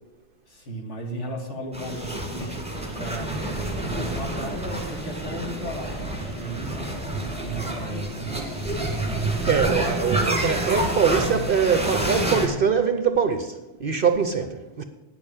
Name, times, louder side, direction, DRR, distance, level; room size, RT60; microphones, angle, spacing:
voice 1, 0.5-2.6 3.0-9.1, right 1 dB, 60° left, 2.3 m, -35 dB
sound 1, 1.7-12.5, right 1 dB, 5° right, 2.0 m, -28 dB
voice 2, 9.5-14.8, right 6 dB, 50° right, 0.8 m, -23 dB
9.3 x 6.8 x 8.8 m
omnidirectional pair, 1.4 m